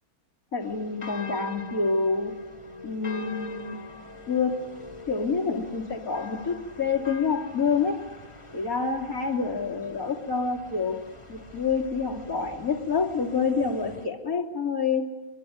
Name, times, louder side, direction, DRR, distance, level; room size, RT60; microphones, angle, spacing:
voice 1, 0.5-2.3 2.8-3.8 4.3-4.7 5.1-8.1 8.5-11.0 11.3-15.1, left 5 dB, 40° left, 3 dB, 3.2 m, -27 dB
sound 1, 0.6-14.0, left 3 dB, 15° left, 2.6 m, -44 dB
26.0 x 23.5 x 9.2 m, 1.0 s
omnidirectional pair, 2.4 m